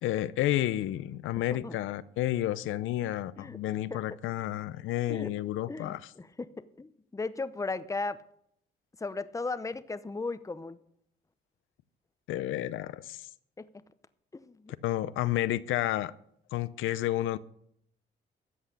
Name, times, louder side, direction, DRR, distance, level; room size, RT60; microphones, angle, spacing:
voice 1, 0.0-6.1 12.3-13.2 14.8-16.1 16.5-17.4, left 14 dB, 85° left, 0.6 m, -31 dB
voice 2, 5.7-6.5 6.8-8.2 9.0-10.8 13.6-13.7 14.3-14.7, left 3 dB, 15° left, 0.8 m, -36 dB
13.5 x 8.1 x 6.7 m
cardioid pair, 90°, 20 cm